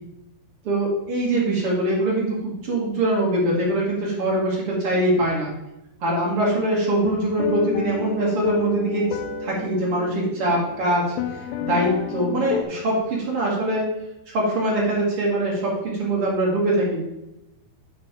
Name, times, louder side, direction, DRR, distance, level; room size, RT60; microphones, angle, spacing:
voice 1, 0.6-5.5 6.0-11.1 11.3-11.4 11.7-13.9 14.3-17.0, right 1 dB, 45° right, -4 dB, 1.9 m, -23 dB
sound 1, 7.0-12.6, left 9 dB, 85° left, 2.4 m, -31 dB
10.5 x 6.0 x 3.7 m, 0.93 s
omnidirectional pair, 5.5 m